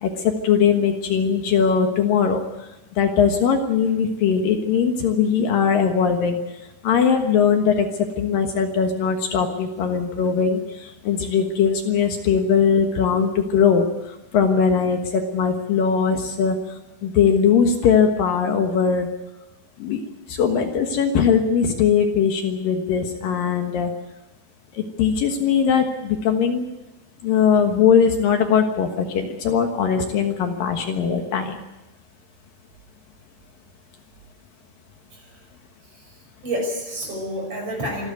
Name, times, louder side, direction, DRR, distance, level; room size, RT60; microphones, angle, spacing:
voice 1, 0.0-2.4 3.0-6.4 6.8-7.9 8.2-13.9 14.3-16.6 17.0-19.1 19.8-20.0 20.3-23.9 24.7-26.6 27.2-31.6, left 7 dB, 65° left, 4 dB, 3.0 m, -20 dB
voice 2, 36.4-38.1, equal, 35° right, 2 dB, 6.5 m, -29 dB
25.5 x 12.0 x 9.4 m, 1.0 s
omnidirectional pair, 4.5 m